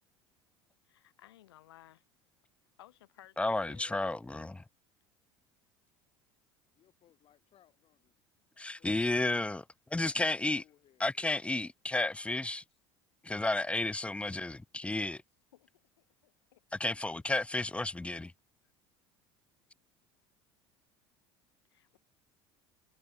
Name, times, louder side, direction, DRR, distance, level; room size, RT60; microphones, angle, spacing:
voice 1, 0.8-2.0 2.8-4.0 15.5-16.6 21.7-22.0, left 14 dB, 85° left, 4.9 m, -59 dB
voice 2, 3.4-4.6 8.6-9.6 9.9-10.6 11.0-12.6 13.2-15.2 16.8-18.3, left 2 dB, 10° left, 0.6 m, -32 dB
voice 3, 6.8-8.2 8.5-9.6 10.0-11.3 12.7-12.8, left 11 dB, 50° left, 6.9 m, -68 dB
hypercardioid pair, 80°, 13 cm